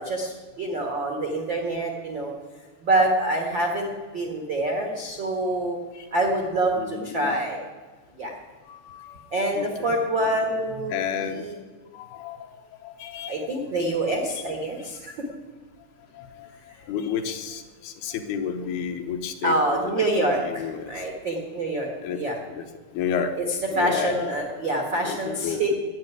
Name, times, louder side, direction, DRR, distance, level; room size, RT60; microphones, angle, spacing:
voice 1, 0.0-2.3 2.8-5.8 6.1-7.6 8.2-8.3 9.3-11.5 13.3-15.2 19.4-22.4 23.4-25.7, right 1 dB, 65° right, 1 dB, 1.1 m, -26 dB
voice 2, 6.8-7.4 8.7-9.2 9.6-9.7 10.9-11.5 11.9-12.4 12.8-13.5 16.2-16.5 16.9-19.6 19.9-20.1 20.4-20.9 22.0-22.2 22.5-22.6 22.9-23.4 23.7-24.3 25.0-25.7, left 7 dB, 75° left, 5 dB, 2.6 m, -31 dB
11.5 x 9.8 x 9.4 m, 1.4 s
omnidirectional pair, 4.9 m